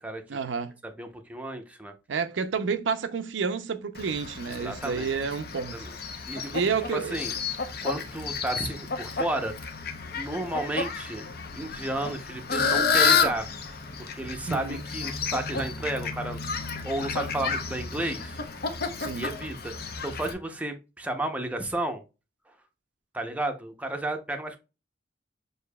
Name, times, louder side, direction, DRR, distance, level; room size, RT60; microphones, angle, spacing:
voice 1, 0.3-0.8 2.1-5.8 6.5-7.2 14.5-14.8 19.0-19.3, right 5 dB, 80° right, 0.5 m, -30 dB
voice 2, 0.8-1.9 4.5-5.1 5.7-5.9 6.3-9.6 10.1-11.3 11.6-13.5 14.0-16.4 16.8-18.4 19.1-22.0 23.1-24.6, right 1 dB, 10° right, 0.6 m, -33 dB
Fowl, 3.9-20.3, left 5 dB, 60° left, 0.7 m, -31 dB
6.5 x 2.7 x 2.2 m
head